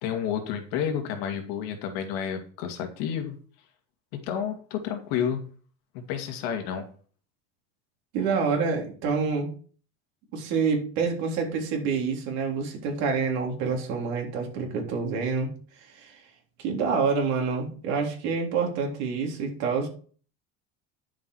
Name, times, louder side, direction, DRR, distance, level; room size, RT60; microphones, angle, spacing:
voice 1, 0.0-3.4 4.2-5.4 5.9-6.9, left 8 dB, 60° left, 5 dB, 2.3 m, -30 dB
voice 2, 8.1-9.5 10.3-15.5 15.9-16.2 16.6-19.9, right 5 dB, 55° right, 1 dB, 3.7 m, -27 dB
10.5 x 7.4 x 4.8 m, 0.42 s
cardioid pair, 175°, 31 cm